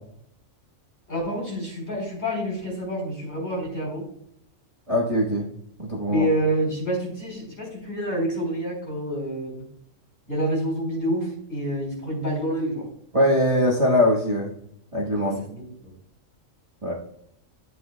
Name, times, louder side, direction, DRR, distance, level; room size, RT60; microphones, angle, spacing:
voice 1, 1.1-4.1 6.1-9.5 10.3-12.9 15.1-15.9, equal, 35° left, -3 dB, 3.7 m, -28 dB
voice 2, 4.9-5.5 5.8-6.3 13.1-14.5 14.9-15.4 16.8-16.9, left 1 dB, 25° right, -4 dB, 1.2 m, -21 dB
11.5 x 7.7 x 2.2 m, 0.72 s
omnidirectional pair, 1.4 m